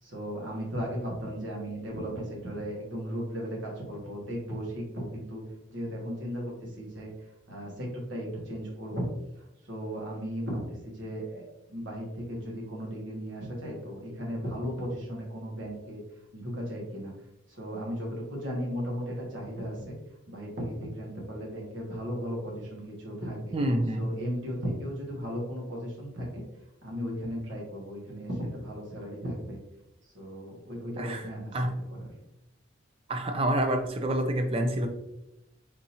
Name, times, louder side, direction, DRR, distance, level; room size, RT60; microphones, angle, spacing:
voice 1, 0.0-5.4 5.7-9.1 9.6-10.6 10.9-16.0 16.3-17.1 17.5-19.9 20.3-23.5 23.9-26.4 26.8-29.6 30.0-31.7 32.0-32.1, equal, 65° right, -2 dB, 1.2 m, -36 dB
voice 2, 23.5-24.2 31.0-31.2 31.5-31.7 33.1-34.9, right 1 dB, 30° right, 5 dB, 0.4 m, -27 dB
3.6 x 2.9 x 2.7 m, 0.89 s
head